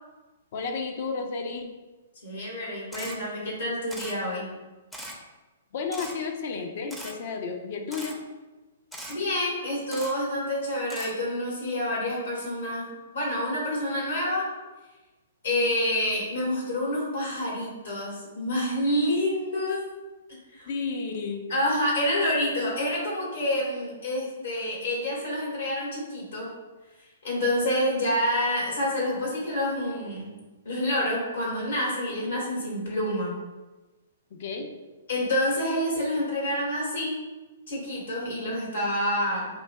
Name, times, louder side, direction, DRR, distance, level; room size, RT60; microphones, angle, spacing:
voice 1, 0.5-1.7 5.7-8.3 20.7-21.5 34.3-34.7, left 4 dB, 55° left, 5 dB, 0.6 m, -32 dB
voice 2, 2.2-4.5 9.1-14.4 15.4-19.8 20.5-20.7 21.5-26.5 27.2-30.3 30.6-33.4 35.1-37.2 37.7-39.5, left 1 dB, 80° left, -4 dB, 1.5 m, -28 dB
Camera, 2.9-3.2 3.9-4.1 4.9-5.2 5.9-6.1 6.9-7.1 7.9-8.1 8.9-9.1 9.9-10.1 10.9-11.1, right 1 dB, 5° left, 0.6 m, -39 dB
5.3 x 2.7 x 2.2 m, 1.2 s
hypercardioid pair, 130°, 0 cm